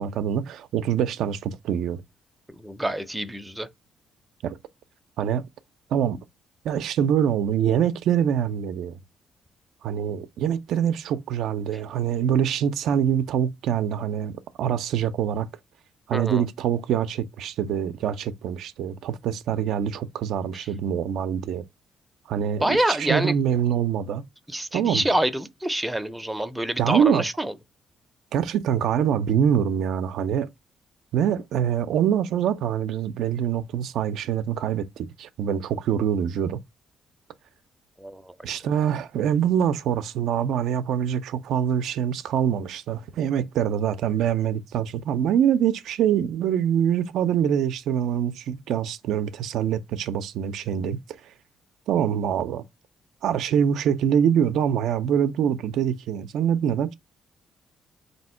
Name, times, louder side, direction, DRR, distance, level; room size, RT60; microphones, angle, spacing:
voice 1, 0.0-2.0 4.4-4.6 5.2-5.5 5.9-6.2 6.6-9.0 9.8-15.5 16.1-21.6 22.3-24.2 24.7-25.1 26.8-27.2 28.3-30.5 31.1-36.6 38.4-51.0 51.9-52.6 53.2-56.9, right 9 dB, 80° right, 0.3 m, -24 dB
voice 2, 2.6-3.7 16.1-16.4 20.5-20.7 22.6-23.3 24.5-27.5 38.0-38.3, right 1 dB, 5° right, 0.5 m, -26 dB
3.5 x 2.7 x 4.2 m
cardioid pair, 90°, 0 cm